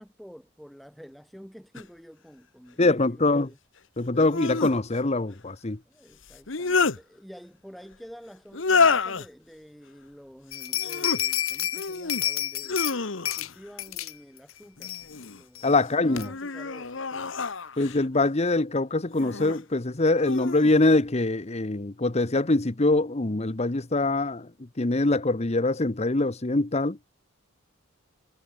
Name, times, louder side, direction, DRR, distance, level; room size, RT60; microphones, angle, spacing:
voice 1, 0.0-3.6 5.9-12.9 13.4-17.3, equal, ahead, 6.8 m, -49 dB
sound 1, 1.8-1.9 4.1-4.8 6.3-7.0 8.5-9.3 10.7-11.2 11.7-12.2 12.6-13.5 14.8-15.4 16.0-18.0 19.1-19.6 20.2-20.7, left 4 dB, 65° left, 1.3 m, -28 dB
voice 2, 2.8-3.5 4.0-5.8 15.6-16.3 17.8-27.0, left 2 dB, 30° left, 1.0 m, -24 dB
sound 2, 10.5-13.0 13.3-13.5 13.8-14.1 14.5-14.6 14.8-15.2 15.6-15.7 16.2-16.3, left 12 dB, 85° left, 2.2 m, -30 dB
head